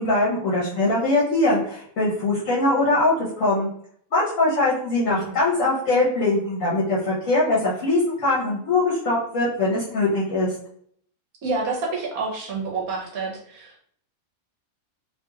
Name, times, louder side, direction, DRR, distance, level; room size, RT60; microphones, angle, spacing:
voice 1, 0.0-3.7 4.1-10.5, left 2 dB, 65° left, -6 dB, 1.1 m, -22 dB
voice 2, 5.1-5.4 11.4-13.8, right 3 dB, 75° right, -1 dB, 1.2 m, -29 dB
2.8 x 2.8 x 2.3 m, 0.63 s
omnidirectional pair, 1.5 m